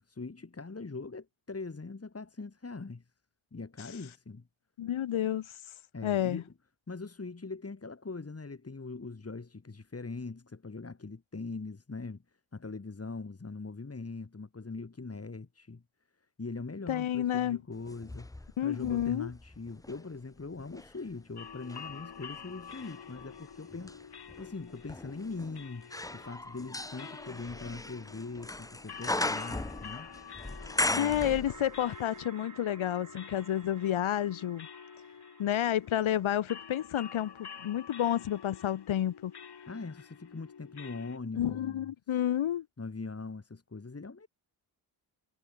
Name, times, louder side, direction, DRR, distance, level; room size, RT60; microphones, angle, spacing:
voice 1, 0.0-3.0 3.5-4.5 5.9-6.5 6.9-12.2 12.5-15.8 16.4-24.0 24.4-30.1 30.9-31.4 39.7-41.9 42.8-44.3, left 3 dB, 30° left, 5.2 m, -41 dB
voice 2, 4.8-5.6 6.0-6.4 16.9-17.6 18.6-19.3 30.9-34.7 35.4-39.3 41.4-42.6, left 11 dB, 80° left, 1.4 m, -30 dB
sound 1, 17.8-20.0 20.6-31.9 32.2-32.3, left 2 dB, 5° left, 0.7 m, -38 dB
sound 2, 21.4-41.2, left 7 dB, 55° left, 3.1 m, -49 dB
sound 3, 31.5-37.2, right 4 dB, 40° right, 5.9 m, -54 dB
cardioid pair, 85°, 48 cm